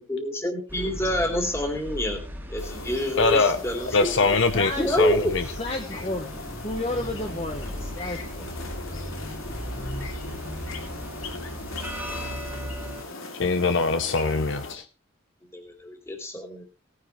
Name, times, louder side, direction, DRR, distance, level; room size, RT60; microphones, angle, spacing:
voice 1, 0.1-2.2 2.5-4.4 4.8-5.3 15.5-16.6, left 1 dB, 15° left, 3 dB, 2.5 m, -27 dB
sound 1, 0.7-13.0, equal, 10° right, 2.1 m, -37 dB
sound 2, 2.6-14.7, left 3 dB, 80° left, 2.7 m, -39 dB
voice 2, 3.2-3.6 3.9-5.4 13.4-14.8, left 4 dB, 55° left, 9 dB, 0.7 m, -22 dB
voice 3, 4.5-4.9 5.6-8.5, left 2 dB, 30° left, 4 dB, 1.1 m, -32 dB
17.5 x 9.5 x 3.1 m, 0.31 s
head